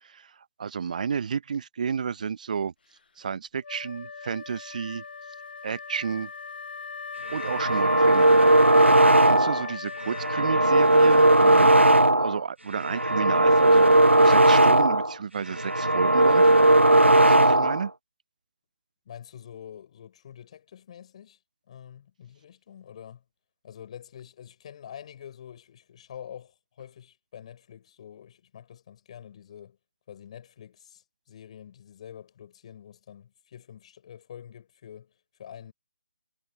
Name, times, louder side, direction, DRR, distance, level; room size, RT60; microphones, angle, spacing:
voice 1, 0.0-2.7 3.2-5.0 5.6-6.3 7.3-8.4 9.2-11.9 12.2-16.5 17.2-17.9, right 6 dB, 40° right, 0.6 m, -31 dB
Wind instrument woodwind instrument, 3.6-11.2, left 5 dB, 55° left, 0.9 m, -39 dB
sound 1, 7.3-9.7 10.1-12.4 12.8-15.1 15.5-17.9, right 1 dB, 85° right, 0.8 m, -18 dB
voice 2, 19.1-21.4 21.7-23.2 23.6-29.8 30.1-35.7, left 9 dB, 35° left, 5.3 m, -46 dB
figure-of-eight pair, 145°, 6 cm